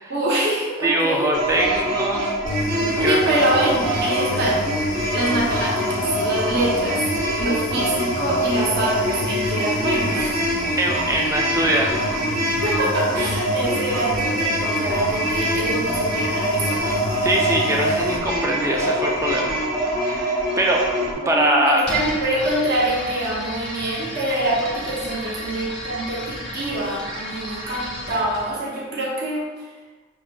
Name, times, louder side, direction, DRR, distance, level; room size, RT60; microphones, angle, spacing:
voice 1, 0.1-1.3 2.9-4.6 5.1-7.0 7.4-10.4 12.6-17.0 21.2-29.6, right 1 dB, 45° right, -4 dB, 0.7 m, -25 dB
voice 2, 0.8-2.3 3.0-3.2 4.3-4.5 10.8-12.0 17.2-19.6 20.0-20.8 21.3-21.8, right 1 dB, 15° right, 0 dB, 0.3 m, -22 dB
sound 1, 1.3-21.1, equal, 75° right, 1.3 m, -24 dB
Human voice / Buzz, 2.5-18.2, left 2 dB, 55° left, 0.4 m, -31 dB
sound 2, 21.8-28.5, equal, 5° left, 0.7 m, -33 dB
6.2 x 2.5 x 2.2 m, 1.3 s
head